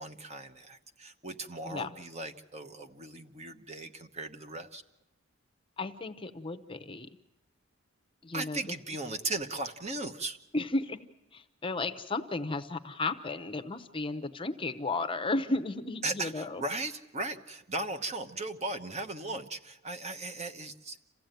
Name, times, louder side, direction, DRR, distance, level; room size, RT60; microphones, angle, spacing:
voice 1, 0.0-4.8 8.3-10.4 16.0-21.0, right 2 dB, 30° right, 7 dB, 1.1 m, -37 dB
voice 2, 5.8-7.1 8.2-8.6 10.5-11.1 11.3-16.6, left 2 dB, 25° left, 10 dB, 0.8 m, -34 dB
27.5 x 15.5 x 9.1 m, 0.97 s
head